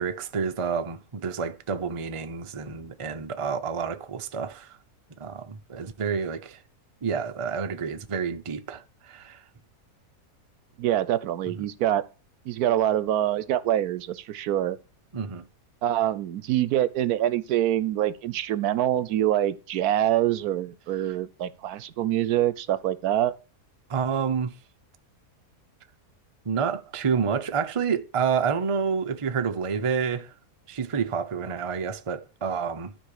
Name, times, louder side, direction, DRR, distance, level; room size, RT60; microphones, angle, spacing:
voice 1, 0.0-4.8 5.2-6.6 7.0-9.4 11.6-11.7 15.1-15.4 23.9-24.6 26.4-30.3 30.7-32.9, right 6 dB, 30° right, 0.6 m, -29 dB
voice 2, 10.8-12.0 12.5-14.8 15.8-23.3, right 12 dB, 75° right, 1.1 m, -25 dB
12.0 x 5.3 x 6.5 m
omnidirectional pair, 1.7 m